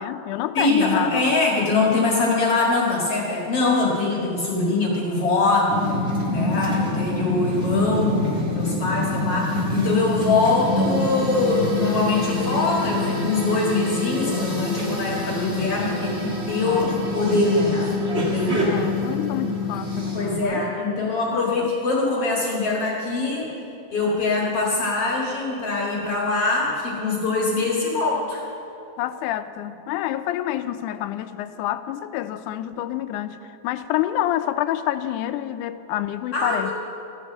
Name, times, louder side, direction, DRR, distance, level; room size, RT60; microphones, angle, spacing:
voice 1, 0.0-1.4 18.6-20.7 21.3-21.7 29.0-33.4 33.6-36.7, left 13 dB, 90° left, 11 dB, 2.1 m, -28 dB
voice 2, 0.5-6.0 6.3-16.8 17.1-18.7 20.1-23.5 23.9-28.4 36.3-36.7, left 3 dB, 55° left, -3 dB, 2.7 m, -23 dB
sound 1, 5.7-20.4, left 2 dB, 30° right, 1.4 m, -26 dB
sound 2, 9.9-20.4, left 1 dB, 45° right, 3.8 m, -34 dB
14.0 x 9.5 x 7.1 m, 2.8 s
omnidirectional pair, 3.4 m